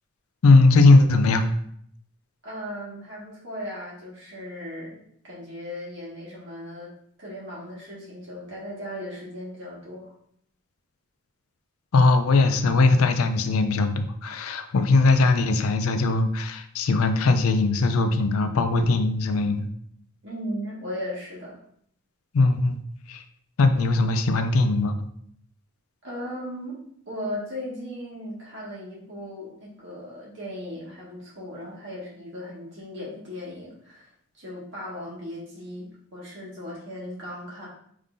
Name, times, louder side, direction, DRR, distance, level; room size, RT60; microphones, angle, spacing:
voice 1, 0.4-1.5 11.9-19.7 22.3-22.8 23.1-23.2 23.6-24.9, left 3 dB, 85° left, 8 dB, 0.5 m, -20 dB
voice 2, 2.4-6.9 7.2-10.1 20.2-21.6 26.0-34.1 34.3-37.7, equal, 55° right, -6 dB, 1.7 m, -37 dB
5.3 x 3.2 x 2.6 m, 0.66 s
head